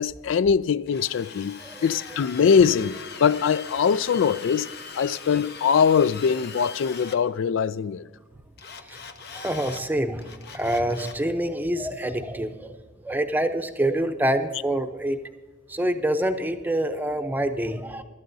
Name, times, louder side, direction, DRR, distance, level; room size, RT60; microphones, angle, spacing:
voice 1, 0.0-4.7 4.9-8.1, left 6 dB, 80° left, 0.3 m, -22 dB
Drill, 0.9-7.2 8.6-9.8 10.2-11.2, left 5 dB, 55° left, 0.9 m, -40 dB
voice 2, 8.8-12.8 13.0-15.2 15.7-18.0, right 1 dB, 10° right, 0.7 m, -26 dB
21.5 x 12.5 x 2.7 m
head